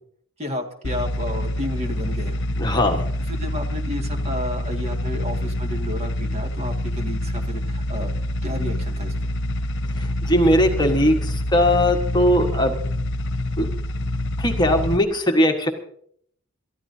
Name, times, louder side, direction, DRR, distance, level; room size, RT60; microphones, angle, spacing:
voice 1, 0.4-2.4 3.3-8.1 8.4-9.3, left 1 dB, 30° right, 3 dB, 2.0 m, -32 dB
sound 1, 0.8-15.0, left 1 dB, 60° left, 1.1 m, -26 dB
voice 2, 2.6-3.1 10.0-12.7 13.6-13.7 14.4-15.7, equal, 20° left, 3 dB, 1.4 m, -19 dB
28.5 x 14.0 x 2.8 m, 0.66 s
head